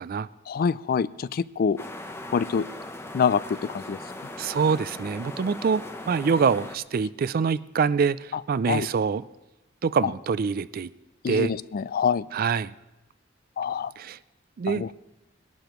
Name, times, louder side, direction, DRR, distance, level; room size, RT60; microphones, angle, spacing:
voice 1, 0.5-1.8 2.3-2.7 3.1-4.0 8.3-8.4 8.7-8.9 10.0-10.1 11.2-12.3 13.6-13.9 14.7-14.9, left 6 dB, 50° left, 18 dB, 0.3 m, -25 dB
sound 1, 1.8-6.8, left 1 dB, 15° left, 0.7 m, -39 dB
voice 2, 4.4-9.2 9.8-10.9 11.3-11.5 12.3-12.7 14.0-14.2 14.6-14.8, right 5 dB, 45° right, 16 dB, 0.4 m, -25 dB
21.0 x 11.5 x 3.1 m, 1.0 s
head